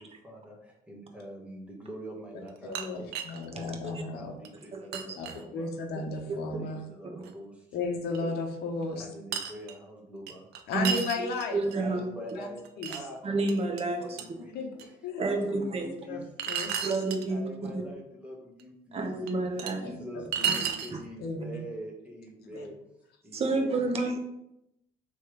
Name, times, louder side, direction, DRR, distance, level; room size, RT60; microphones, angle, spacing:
voice 1, 0.0-3.2 4.1-5.7 6.6-7.7 8.9-10.5 11.8-13.2 13.8-14.5 14.8-15.0 15.2-16.3 17.3-19.1 19.5-22.8 23.2-24.2, equal, 5° right, -2 dB, 1.2 m, -44 dB
sound 1, 2.5-3.5 4.0-4.1 4.5-4.6 4.9-5.4 7.2-7.3 8.1-8.2 9.3-9.8 10.3-11.8 12.3-13.0 13.5-13.8 14.2-14.3 14.8-14.9 16.4-17.3 18.6-18.7 19.3-19.7 20.3-20.9, right 7 dB, 75° right, 0.5 m, -33 dB
voice 2, 2.6-3.0 3.2-4.3 5.2-6.9 7.7-9.0 10.7-11.6 12.4-12.5 12.8-12.9 14.5-14.7 15.0-15.2 16.1-16.2 16.5-16.9 19.3-19.4 19.8-20.2 21.2-21.6 22.5-22.7, left 3 dB, 70° left, 1 dB, 0.9 m, -34 dB
voice 3, 3.5-4.0 4.7-5.0 6.3-6.4 7.1-7.2 10.7-11.2 11.5-12.0 13.2-14.0 15.2-15.9 16.8-17.4 17.7-17.8 18.9-19.9 20.5-20.6 23.3-24.2, right 2 dB, 35° right, 4 dB, 0.8 m, -30 dB
3.3 x 3.2 x 4.6 m, 0.83 s
cardioid pair, 110°, 17 cm